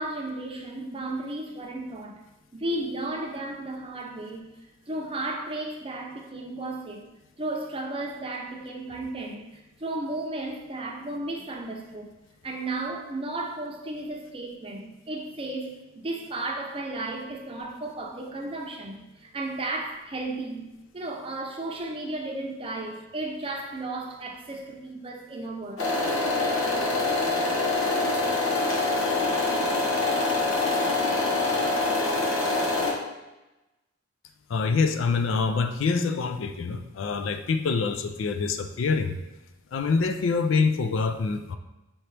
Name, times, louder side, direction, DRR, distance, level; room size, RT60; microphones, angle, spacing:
voice 1, 0.0-2.2 2.5-4.4 4.9-7.0 7.4-9.5 9.8-12.1 12.4-25.9, right 2 dB, 30° right, 0.6 m, -34 dB
sound 1, 25.8-32.9, left 2 dB, 85° left, 1.1 m, -25 dB
voice 2, 34.5-39.2 39.7-41.6, left 4 dB, 70° left, 0.4 m, -25 dB
5.5 x 2.9 x 3.3 m
head